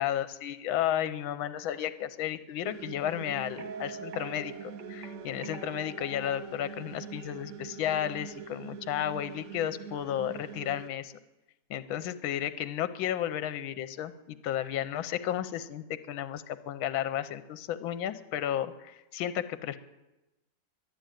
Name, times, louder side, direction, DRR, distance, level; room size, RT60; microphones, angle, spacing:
voice 1, 0.0-11.1 11.7-19.8, left 11 dB, 80° left, 12 dB, 1.5 m, -33 dB
sound 1, 2.6-10.9, right 8 dB, 85° right, 0.7 m, -44 dB
sound 2, 3.5-7.6, right 4 dB, 60° right, 1.7 m, -46 dB
11.5 x 11.0 x 9.1 m, 1.0 s
omnidirectional pair, 2.2 m